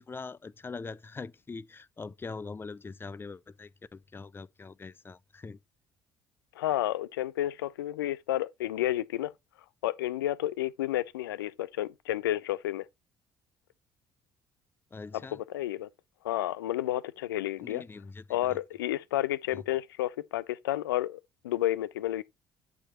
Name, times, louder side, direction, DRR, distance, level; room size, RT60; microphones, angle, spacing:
voice 1, 0.0-5.6 14.9-15.4 17.6-18.6 19.5-19.6, left 4 dB, 20° left, 0.5 m, -43 dB
voice 2, 6.6-9.3 9.8-12.9 15.5-15.9 16.2-17.8 18.3-21.2 21.4-22.2, left 14 dB, 75° left, 0.4 m, -31 dB
8.9 x 4.6 x 4.2 m
figure-of-eight pair, 50°, 12 cm